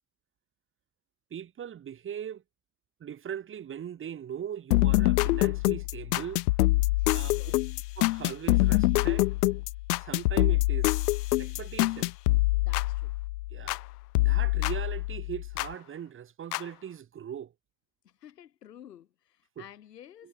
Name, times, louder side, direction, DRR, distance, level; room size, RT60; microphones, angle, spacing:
voice 1, 1.3-2.4 3.0-6.4 7.1-7.6 8.0-9.3 10.0-10.9 11.4-12.1 13.5-13.8 14.2-17.5 19.6-19.7 20.2-20.3, right 9 dB, 25° right, 4.4 m, -39 dB
sound 1, 4.7-13.9 14.1-15.7 16.5-16.6, left 20 dB, 70° left, 0.6 m, -25 dB
voice 2, 6.9-7.6 12.5-13.2 18.0-20.3, left 10 dB, 90° left, 6.1 m, -52 dB
hypercardioid pair, 120°, 47 cm